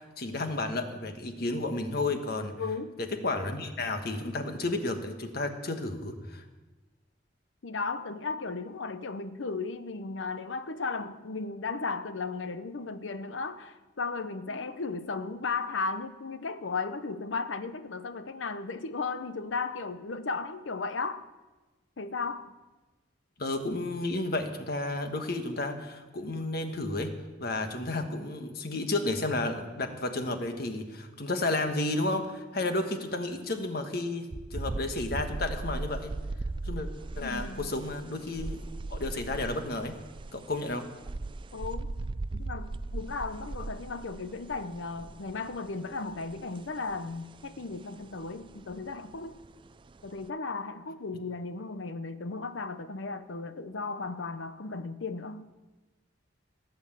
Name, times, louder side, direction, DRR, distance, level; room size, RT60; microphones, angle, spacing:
voice 1, 0.0-2.5 3.2-6.4 23.4-27.1 27.4-36.1 36.6-36.9 37.2-38.6 38.9-40.0 40.3-40.9, left 2 dB, 55° left, 1.4 m, -32 dB
voice 2, 2.5-2.9 7.6-21.3 22.0-22.5 37.2-37.7 41.5-41.9 42.3-49.4 50.0-55.5, left 4 dB, 90° left, 0.8 m, -35 dB
sound 1, 34.3-50.3, right 2 dB, 25° right, 0.4 m, -39 dB
17.5 x 8.0 x 7.4 m
head